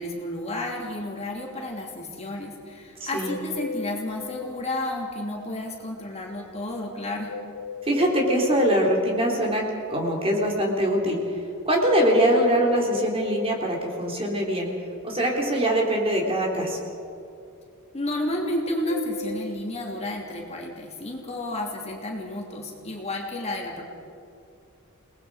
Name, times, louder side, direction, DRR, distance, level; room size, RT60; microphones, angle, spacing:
voice 1, 0.0-7.3 17.9-23.8, left 1 dB, 30° left, -1 dB, 2.9 m, -31 dB
voice 2, 3.0-3.3 7.9-9.6 9.9-11.2 11.7-14.7 15.0-16.8, equal, 25° right, 0 dB, 3.6 m, -23 dB
sound 1, 3.2-4.6 7.2-8.6 12.8-14.2 18.8-20.2, left 3 dB, 65° left, 1.1 m, -37 dB
29.5 x 19.5 x 5.0 m, 2.5 s
head